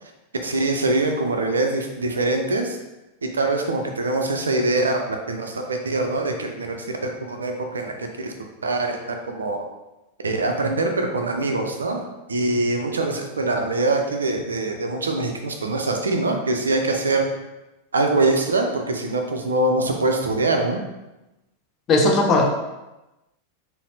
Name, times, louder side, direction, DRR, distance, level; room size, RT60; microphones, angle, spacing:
voice 1, 0.4-2.8 3.2-5.0 5.3-6.8 7.0-8.3 8.6-9.7 10.2-12.0 12.3-17.3 17.9-20.8, right 2 dB, 70° right, 3 dB, 0.4 m, -23 dB
voice 2, 21.9-22.5, left 2 dB, 30° left, 1 dB, 0.5 m, -17 dB
4.0 x 2.0 x 2.7 m, 1.0 s
figure-of-eight pair, 90°, 0 cm